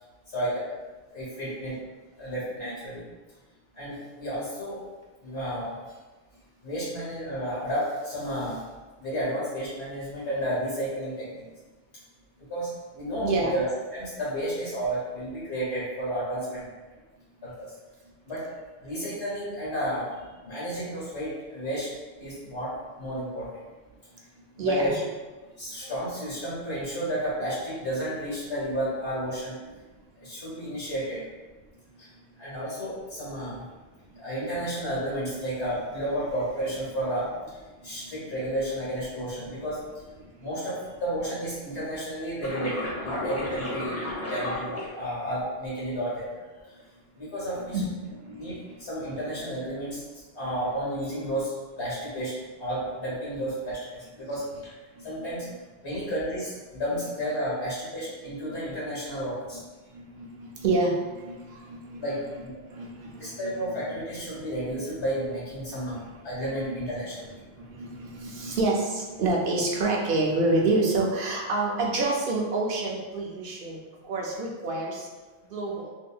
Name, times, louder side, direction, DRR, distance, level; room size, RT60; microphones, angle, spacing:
voice 1, 0.3-0.6 1.1-1.7 2.2-3.0 3.8-4.8 5.2-5.8 6.6-8.6 9.0-11.4 12.5-16.7 17.4-17.7 18.2-18.4 18.8-21.9 22.2-23.5 24.6-25.0 25.6-29.6 30.2-31.2 32.0-32.1 32.4-33.6 34.2-37.3 37.8-39.8 40.4-44.0 44.3-46.3 47.2-47.8 48.3-50.0 50.3-52.3 52.6-54.7 55.0-55.5 55.8-59.6 62.0-62.2 63.2-67.2, equal, 75° left, -8 dB, 1.9 m, -32 dB
voice 2, 13.2-13.5 24.6-24.9 37.8-38.3 40.2-40.5 47.6-48.8 50.4-50.5 55.0-55.5 55.9-56.0 58.4-58.7 59.9-62.2 62.7-63.9 65.8-66.1 66.6-66.8 67.6-73.8 74.0-75.1 75.5-75.9, right 2 dB, 60° right, -2 dB, 0.8 m, -29 dB
sound 1, 42.4-45.4 46.2-46.7, left 1 dB, 20° left, 0.4 m, -34 dB
3.5 x 2.7 x 2.3 m, 1.2 s
omnidirectional pair, 1.1 m